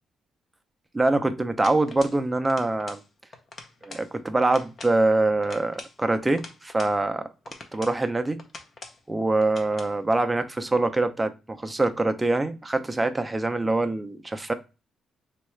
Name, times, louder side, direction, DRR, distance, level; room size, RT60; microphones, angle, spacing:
voice 1, 0.9-3.0 3.8-7.3 7.7-8.4 9.1-14.5, right 2 dB, 15° right, 0.4 m, -24 dB
sound 1, 1.6-2.2 2.4-3.1 3.3-4.1 4.4-5.0 5.4-7.0 7.4-8.0 8.4-9.0 9.4-9.9, left 3 dB, 45° left, 0.6 m, -44 dB
3.2 x 2.3 x 3.1 m
cardioid pair, 90°, 0 cm